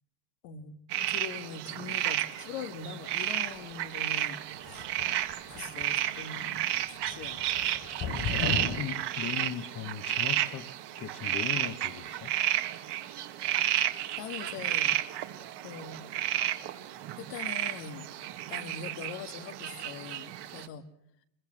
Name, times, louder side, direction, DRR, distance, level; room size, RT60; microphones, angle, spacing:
voice 1, 0.4-0.8 1.1-4.8 5.5-7.5 8.3-8.6 13.5-13.7 14.2-15.0 15.6-16.1 17.2-18.1 18.5-20.9, left 7 dB, 75° left, 7 dB, 2.1 m, -42 dB
sound 1, 0.9-20.7, right 13 dB, 55° right, 1.9 m, -32 dB
sound 2, 4.6-6.1 6.4-6.7 7.0-8.8, left 6 dB, 50° left, 3.5 m, -35 dB
voice 2, 8.8-10.7 11.0-12.3, left 9 dB, 35° left, 10 dB, 1.4 m, -38 dB
25.0 x 22.5 x 7.7 m, 0.76 s
supercardioid pair, 125°, 49 cm